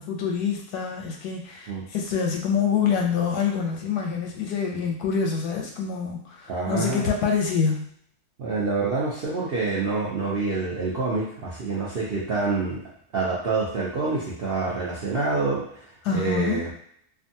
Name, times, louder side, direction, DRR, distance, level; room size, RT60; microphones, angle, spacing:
voice 1, 0.0-7.9 16.0-16.6, left 6 dB, 90° left, 1 dB, 1.1 m, -26 dB
voice 2, 6.5-7.1 8.4-12.8 13.1-15.7 16.1-16.7, right 3 dB, 60° right, -7 dB, 0.6 m, -27 dB
2.5 x 2.4 x 2.6 m, 0.65 s
omnidirectional pair, 1.7 m